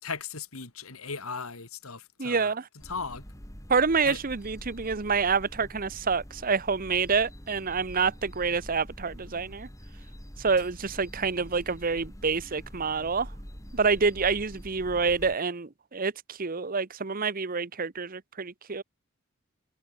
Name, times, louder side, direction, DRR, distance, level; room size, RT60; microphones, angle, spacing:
voice 1, 0.0-2.5 2.9-3.2 4.0-4.2, left 5 dB, 80° left, 3.0 m, -37 dB
voice 2, 2.2-2.7 3.7-9.7 10.4-13.3 13.7-18.8, right 5 dB, 40° right, 0.9 m, -27 dB
sound 1, 2.8-15.4, equal, 15° left, 5.1 m, -45 dB
head